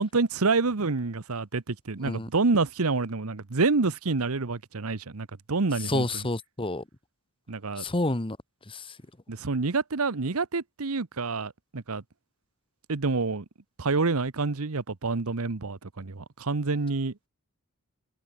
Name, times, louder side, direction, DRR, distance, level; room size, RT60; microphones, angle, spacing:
voice 1, 0.0-6.3 7.5-7.8 9.3-12.0 12.9-13.4 13.8-17.1, right 3 dB, 70° right, 1.0 m, -27 dB
voice 2, 5.9-6.8 7.8-8.4 8.7-8.9, left 2 dB, 25° left, 1.4 m, -29 dB
open air
head